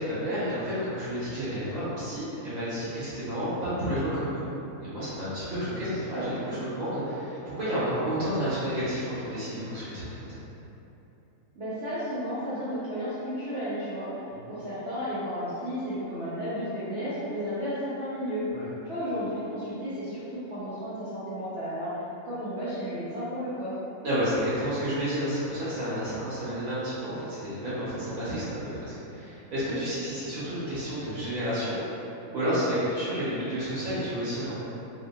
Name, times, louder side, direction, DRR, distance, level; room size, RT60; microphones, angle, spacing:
voice 1, 0.0-4.5 4.8-10.4 18.5-18.7 24.0-31.8 32.3-34.5, equal, 85° right, -11 dB, 1.5 m, -30 dB
voice 2, 11.5-14.1 14.5-18.5 18.8-21.9 22.2-23.8, equal, 60° right, -14 dB, 0.9 m, -33 dB
2.8 x 2.8 x 2.2 m, 2.9 s
omnidirectional pair, 1.5 m